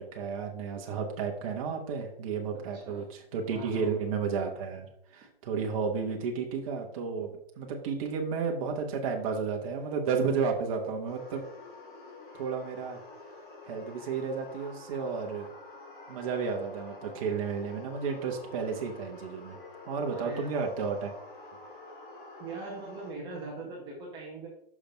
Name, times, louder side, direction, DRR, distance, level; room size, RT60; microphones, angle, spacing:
voice 1, 0.0-11.4 12.3-13.0 13.6-15.5 16.1-19.6 19.8-21.1, right 5 dB, 35° right, 1 dB, 1.3 m, -32 dB
voice 2, 3.5-4.0 20.1-20.5 22.4-24.5, right 3 dB, 15° right, -3 dB, 1.3 m, -41 dB
sound 1, 11.1-23.1, left 3 dB, 60° left, 2.3 m, -48 dB
6.1 x 5.1 x 5.2 m, 0.71 s
hypercardioid pair, 150°, 30 cm